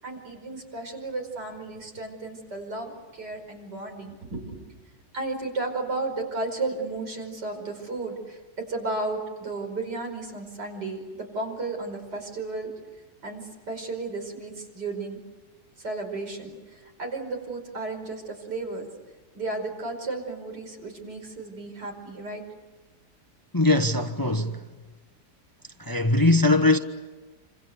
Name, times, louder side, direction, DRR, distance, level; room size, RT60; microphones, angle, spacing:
voice 1, 0.0-4.6 5.1-15.2 15.8-18.8 19.3-22.4, right 3 dB, 90° right, 5.9 m, -34 dB
voice 2, 23.5-24.6 25.8-26.8, left 2 dB, 15° left, 1.1 m, -21 dB
27.5 x 26.5 x 8.1 m
omnidirectional pair, 1.8 m